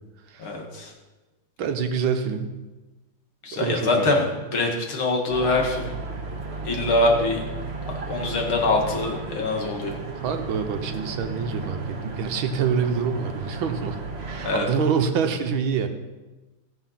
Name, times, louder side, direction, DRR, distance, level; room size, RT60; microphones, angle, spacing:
voice 1, 0.4-0.9 3.4-5.9 6.6-7.4 8.0-9.9 14.4-14.7, left 2 dB, 85° left, 1 dB, 2.8 m, -24 dB
voice 2, 1.6-2.5 3.5-4.1 10.2-14.0 14.3-15.9, right 6 dB, 75° right, 7 dB, 1.8 m, -26 dB
sound 1, 5.3-14.6, right 3 dB, 35° right, 1.4 m, -34 dB
16.5 x 7.2 x 5.8 m, 1.2 s
omnidirectional pair, 2.2 m